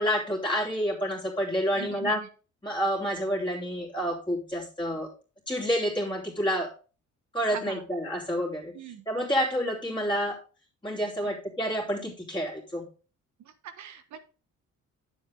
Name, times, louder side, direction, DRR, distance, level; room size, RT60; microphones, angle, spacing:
voice 1, 0.0-2.2 2.6-5.1 5.5-6.7 7.3-8.7 9.1-10.4 10.8-12.8, equal, 15° left, -4 dB, 2.9 m, -29 dB
voice 2, 1.8-2.3 7.5-7.8 8.7-9.0 11.2-11.4 13.4-14.2, right 9 dB, 70° right, 9 dB, 1.2 m, -42 dB
8.6 x 7.4 x 3.5 m, 0.35 s
cardioid pair, 90°, 30 cm